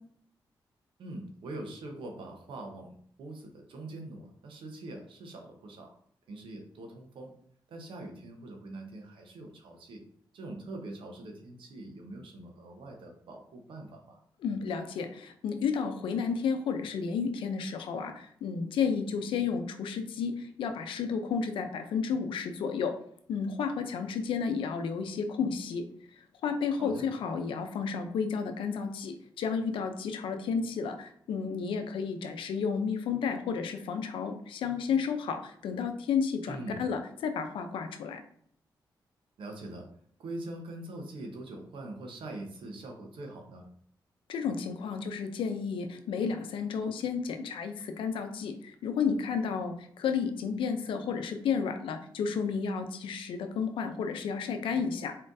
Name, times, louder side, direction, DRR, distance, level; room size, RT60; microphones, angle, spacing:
voice 1, 1.0-5.9 6.3-7.3 7.7-10.0 10.3-14.2 26.8-27.1 36.4-36.8 39.4-39.9 40.2-43.7, right 2 dB, 80° right, 3 dB, 0.9 m, -43 dB
voice 2, 14.4-22.9 23.3-25.8 26.4-38.2 44.3-55.2, left 6 dB, 90° left, 6 dB, 0.6 m, -32 dB
4.4 x 3.8 x 2.6 m, 0.63 s
cardioid pair, 65°, 9 cm